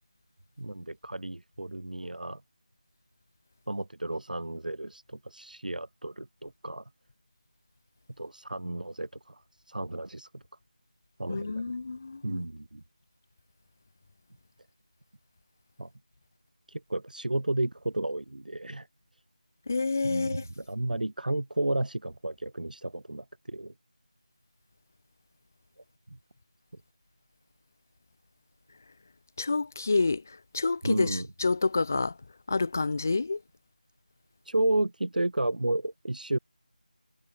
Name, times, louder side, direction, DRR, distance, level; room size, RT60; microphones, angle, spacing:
voice 1, 0.6-2.4 3.7-6.8 8.2-10.4 11.2-11.7 12.2-12.8 15.8-15.9 16.7-18.9 20.0-23.7 26.1-26.2 30.8-31.3 34.5-36.4, right 1 dB, 90° right, 1.8 m, -32 dB
voice 2, 11.3-12.4 19.7-20.4 29.4-30.2 30.5-32.1 32.5-33.4, left 3 dB, 20° left, 0.6 m, -28 dB
figure-of-eight pair, 175°, 4 cm